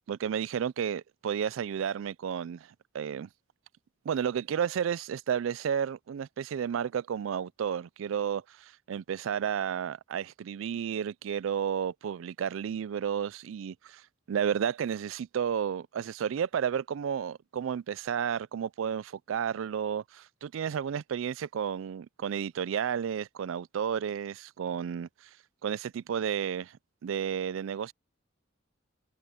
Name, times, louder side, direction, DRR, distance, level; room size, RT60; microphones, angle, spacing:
voice 1, 0.1-2.7 2.9-3.3 4.1-14.0 14.3-25.1 25.6-26.8 27.0-27.9, right 8 dB, 75° right, 0.3 m, -32 dB
head